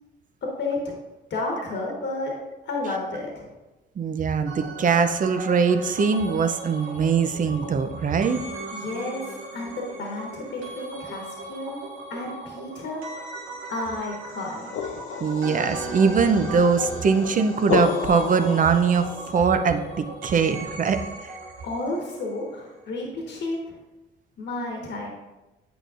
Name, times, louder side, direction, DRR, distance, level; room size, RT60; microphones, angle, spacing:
voice 1, 0.4-1.0 1.3-2.3 2.6-3.5 8.7-11.8 12.1-13.0 13.7-15.0 21.6-23.8 24.4-25.1, left 2 dB, 60° left, -1 dB, 1.3 m, -31 dB
voice 2, 4.0-8.4 8.8-8.9 15.2-21.3, right 5 dB, 40° right, 9 dB, 0.6 m, -22 dB
sound 1, 4.4-22.5 22.8-22.9, right 2 dB, 85° right, 1.7 m, -38 dB
sound 2, 14.4-19.3, left 7 dB, 80° left, 0.5 m, -32 dB
8.8 x 5.0 x 2.5 m, 1.0 s
cardioid pair, 90°, 20 cm